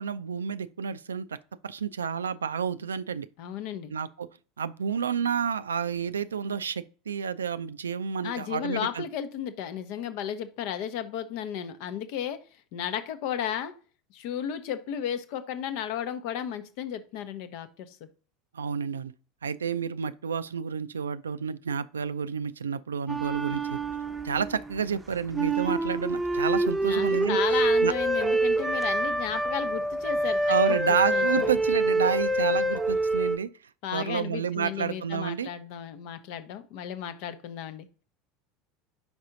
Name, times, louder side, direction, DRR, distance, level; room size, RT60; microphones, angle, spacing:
voice 1, 0.0-1.4 1.6-3.3 3.9-4.3 4.6-9.0 18.5-19.1 19.4-23.8 24.2-27.4 27.8-27.9 30.5-33.5 33.9-35.5, right 6 dB, 75° right, 0.3 m, -30 dB
voice 2, 3.4-3.9 8.2-12.4 12.7-13.7 14.1-18.0 26.8-31.5 33.8-38.0, left 9 dB, 55° left, 0.7 m, -34 dB
sound 1, 23.1-24.7 25.3-33.4, right 2 dB, 10° right, 0.7 m, -26 dB
5.3 x 4.7 x 3.9 m
figure-of-eight pair, 75°, 0 cm